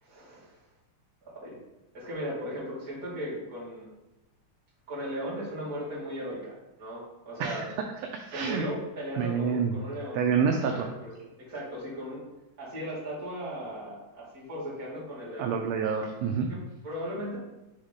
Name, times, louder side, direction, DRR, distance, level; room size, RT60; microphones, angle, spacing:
voice 1, 0.0-0.6 1.2-1.6 1.9-3.9 4.9-7.7 8.3-10.3 10.6-12.2 12.6-15.5 16.5-17.4, equal, 35° right, -8 dB, 2.3 m, -37 dB
voice 2, 8.1-8.6 9.2-9.7 10.1-10.9 15.4-16.5, right 6 dB, 80° right, 2 dB, 1.6 m, -27 dB
5.7 x 3.6 x 5.0 m, 1.0 s
omnidirectional pair, 3.4 m